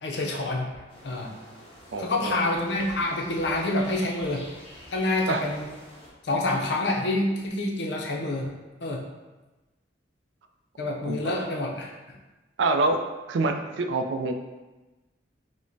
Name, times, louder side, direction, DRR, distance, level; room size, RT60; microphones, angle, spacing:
voice 1, 0.0-1.4 2.0-4.5 4.9-5.7 6.2-8.5 8.8-9.1 10.8-12.2, left 2 dB, 65° left, 0 dB, 0.5 m, -27 dB
sound 1, 0.9-6.1, equal, 30° left, 0.8 m, -47 dB
voice 2, 1.9-2.4 5.3-5.4 11.1-11.3 12.6-13.0 13.3-14.4, right 3 dB, 85° right, 5 dB, 0.4 m, -26 dB
4.9 x 2.1 x 2.6 m, 1.1 s
head